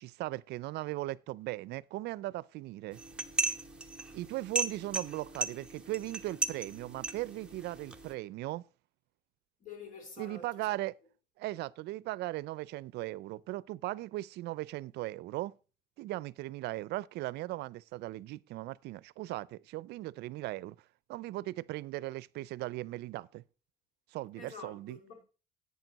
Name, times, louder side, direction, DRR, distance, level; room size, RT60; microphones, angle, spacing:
voice 1, 0.0-3.0 4.1-8.6 10.2-11.0 11.4-15.5 16.0-20.8 21.1-23.4 24.1-25.0, right 17 dB, 80° right, 0.5 m, -38 dB
sound 1, 2.9-8.1, right 3 dB, 5° right, 1.1 m, -37 dB
voice 2, 9.6-10.7 24.3-25.2, left 4 dB, 50° left, 3.2 m, -48 dB
10.5 x 8.4 x 4.0 m
cardioid pair, 110°, 17 cm